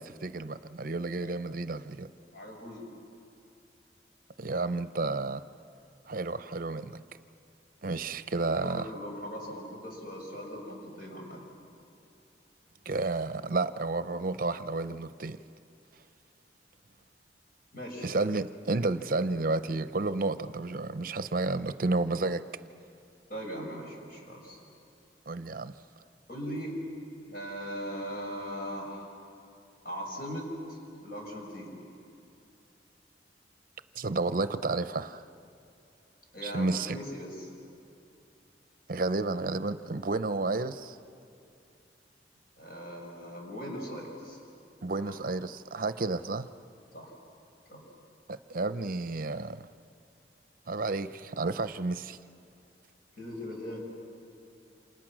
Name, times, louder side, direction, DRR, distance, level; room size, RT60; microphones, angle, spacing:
voice 1, 0.0-2.1 4.4-5.4 6.1-7.0 7.8-8.9 12.9-15.4 18.0-22.4 25.3-25.7 34.0-35.2 36.4-37.0 38.9-41.0 44.8-46.5 48.3-49.7 50.7-52.2, right 3 dB, 50° right, 12 dB, 0.7 m, -31 dB
voice 2, 2.3-2.9 8.4-11.5 17.7-18.1 23.3-24.6 26.3-26.7 27.3-29.1 29.8-31.8 36.3-37.5 42.6-44.4 45.0-45.1 46.9-47.1 47.7-47.8 53.1-53.8, equal, 55° left, -1 dB, 6.8 m, -39 dB
28.5 x 27.5 x 6.2 m, 2.7 s
head